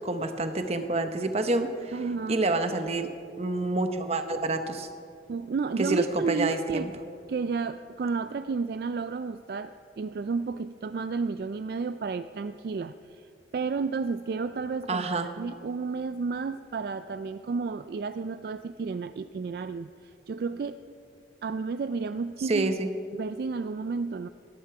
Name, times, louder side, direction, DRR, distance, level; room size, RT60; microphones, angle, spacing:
voice 1, 0.0-2.0 2.3-3.1 3.4-4.9 5.8-6.9 14.9-15.3 22.4-22.9, right 2 dB, 35° right, 8 dB, 0.8 m, -28 dB
voice 2, 1.9-2.5 5.3-6.9 7.3-15.0 15.4-20.8 21.4-22.8 23.1-24.3, right 4 dB, 55° right, 11 dB, 0.3 m, -32 dB
17.5 x 11.0 x 4.8 m, 2.5 s
head